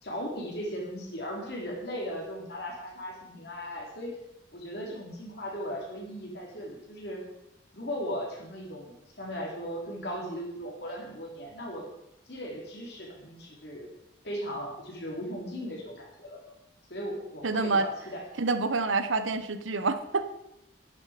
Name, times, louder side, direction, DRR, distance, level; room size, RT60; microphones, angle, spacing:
voice 1, 0.0-4.2 4.5-7.2 7.7-11.8 12.3-13.9 14.2-16.5 16.9-18.2, equal, 55° left, -1 dB, 3.4 m, -37 dB
voice 2, 17.4-17.9 18.4-20.3, right 3 dB, 85° right, 10 dB, 1.0 m, -27 dB
11.0 x 10.5 x 5.0 m, 0.82 s
head